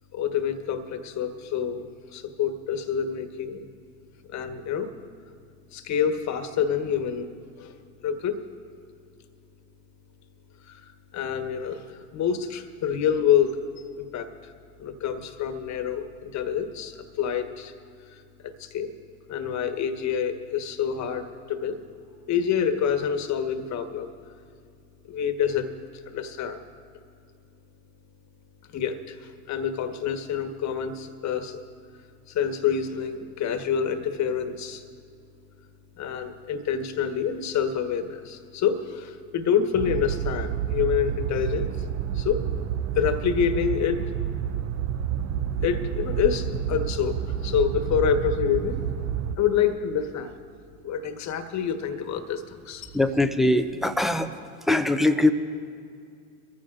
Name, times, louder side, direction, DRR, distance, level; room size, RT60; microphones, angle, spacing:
voice 1, 0.1-3.7 4.3-4.9 5.7-7.3 7.6-7.8 8.0-8.4 10.6-13.6 14.0-14.5 14.8-17.7 18.1-18.9 19.3-21.8 22.3-24.1 25.1-25.7 26.0-26.6 28.7-31.6 32.3-34.8 36.0-41.8 42.1-42.4 42.9-44.0 45.6-48.8 49.4-50.3 50.8-52.9, left 8 dB, 35° left, 8 dB, 1.4 m, -27 dB
sound 1, 39.7-49.4, right 9 dB, 35° right, 0.7 m, -29 dB
voice 2, 52.9-54.3 54.6-55.3, left 1 dB, ahead, 8 dB, 0.5 m, -22 dB
24.5 x 15.0 x 2.5 m, 2.4 s
hypercardioid pair, 85°, 45 cm